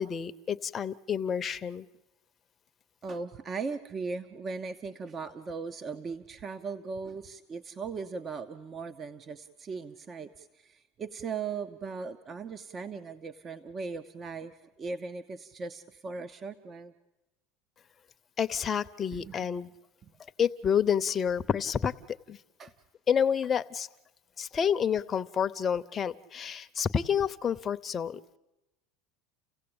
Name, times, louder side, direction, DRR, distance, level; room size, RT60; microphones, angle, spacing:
voice 1, 0.0-1.9 18.4-19.7 20.4-22.4 23.1-23.9 24.4-28.2, left 7 dB, 30° left, 11 dB, 0.8 m, -29 dB
voice 2, 3.0-16.9 19.1-19.5 22.6-22.7, right 4 dB, 30° right, 11 dB, 0.9 m, -38 dB
29.5 x 16.0 x 8.8 m, 1.0 s
supercardioid pair, 110°, 0 cm